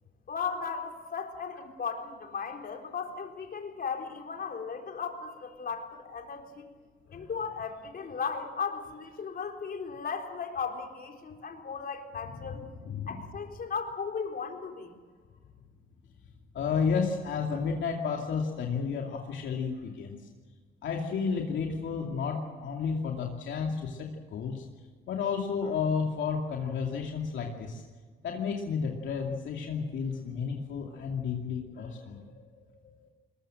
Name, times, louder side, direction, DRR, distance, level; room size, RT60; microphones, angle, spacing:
voice 1, 0.3-6.7 7.1-12.6 13.1-14.9, left 5 dB, 50° left, 3 dB, 3.9 m, -36 dB
voice 2, 12.6-13.2 16.5-20.3 20.8-24.6 25.1-27.8 28.2-33.1, left 5 dB, 70° left, 1 dB, 2.6 m, -32 dB
21.5 x 21.0 x 7.7 m, 1.5 s
cardioid pair, 90°, 20 cm